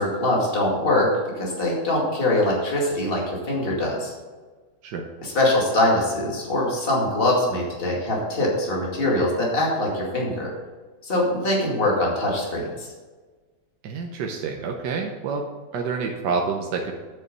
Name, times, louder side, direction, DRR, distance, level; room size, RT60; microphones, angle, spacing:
voice 1, 0.0-4.1 5.2-10.5 11.0-12.9, left 1 dB, 30° left, -3 dB, 2.5 m, -23 dB
voice 2, 13.8-15.4 15.7-16.9, right 5 dB, 75° right, 2 dB, 1.5 m, -28 dB
9.1 x 6.9 x 5.4 m, 1.4 s
omnidirectional pair, 1.9 m